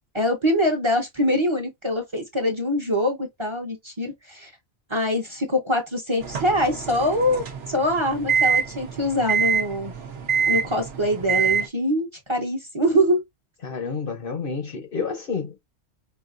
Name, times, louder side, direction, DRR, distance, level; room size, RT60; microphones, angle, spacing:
voice 1, 0.1-4.5 4.9-9.9 10.5-13.2, equal, 25° right, 0.9 m, -24 dB
sound 1, 6.2-11.7, right 6 dB, 85° right, 1.1 m, -25 dB
voice 2, 13.6-15.6, left 5 dB, 55° left, 0.9 m, -29 dB
5.1 x 2.3 x 2.5 m
omnidirectional pair, 1.2 m